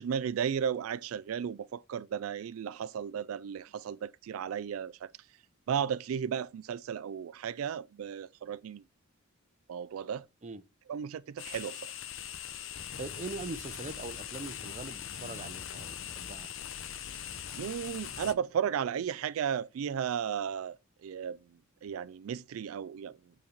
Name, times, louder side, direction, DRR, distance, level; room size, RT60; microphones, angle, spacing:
voice 1, 0.0-5.1 5.7-8.8 9.7-10.3 10.9-11.9 17.6-20.8 21.0-21.4 21.8-23.2, right 8 dB, 85° right, 0.3 m, -34 dB
sound 1, 11.4-18.3, left 9 dB, 70° left, 0.8 m, -41 dB
voice 2, 13.0-16.5, right 3 dB, 35° right, 0.6 m, -42 dB
8.5 x 4.0 x 4.3 m
head